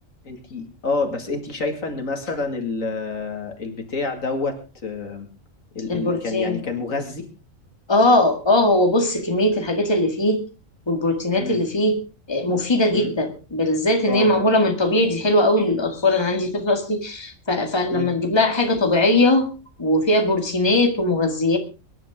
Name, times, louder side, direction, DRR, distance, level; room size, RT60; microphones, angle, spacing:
voice 1, 0.2-5.3 5.7-7.2 11.4-11.6 12.9-13.1 14.1-14.3 17.9-18.1, left 3 dB, 75° left, 5 dB, 2.7 m, -28 dB
voice 2, 5.9-6.6 7.9-10.4 10.9-12.0 12.3-19.5 19.8-21.6, left 1 dB, 20° left, 5 dB, 2.0 m, -20 dB
23.5 x 11.0 x 3.7 m, 0.33 s
omnidirectional pair, 1.4 m